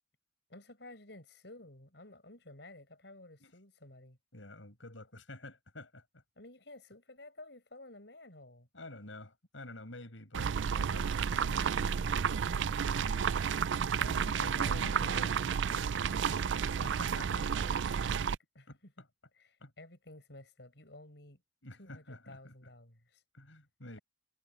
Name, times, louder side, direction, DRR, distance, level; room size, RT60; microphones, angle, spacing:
voice 1, 0.5-4.2 6.4-8.7 14.0-15.9 17.1-18.9 19.4-21.4 21.8-23.2, left 2 dB, 60° left, 7.7 m, -53 dB
voice 2, 4.3-6.2 8.7-13.2 14.1-17.5 18.7-19.1 19.6-19.7 21.6-22.7 23.3-24.0, left 2 dB, 90° left, 7.0 m, -49 dB
sound 1, 10.3-18.4, right 7 dB, 75° right, 0.4 m, -31 dB
head